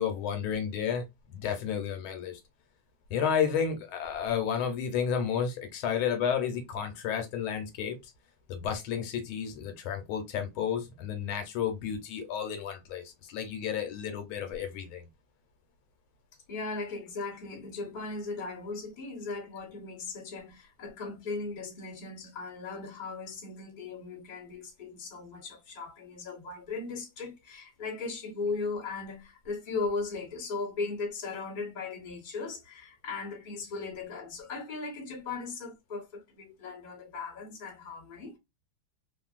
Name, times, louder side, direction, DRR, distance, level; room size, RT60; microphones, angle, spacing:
voice 1, 0.0-2.4 3.1-8.1 8.5-15.1, left 7 dB, 85° left, 1.5 m, -32 dB
voice 2, 16.5-38.4, left 4 dB, 30° left, 1.0 m, -37 dB
3.4 x 2.5 x 2.3 m
omnidirectional pair, 2.2 m